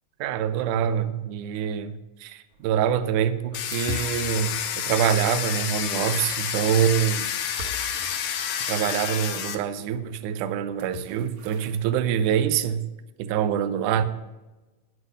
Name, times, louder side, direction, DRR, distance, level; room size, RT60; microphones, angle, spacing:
voice 1, 0.2-7.3 8.7-12.8 13.2-14.0, right 9 dB, 80° right, 10 dB, 1.8 m, -25 dB
sound 1, 2.5-12.0, left 2 dB, 65° right, 2.2 m, -43 dB
Domestic sounds home sounds, 3.5-9.6, left 9 dB, 75° left, 2.0 m, -29 dB
9.8 x 8.0 x 5.4 m, 1.1 s
omnidirectional pair, 4.4 m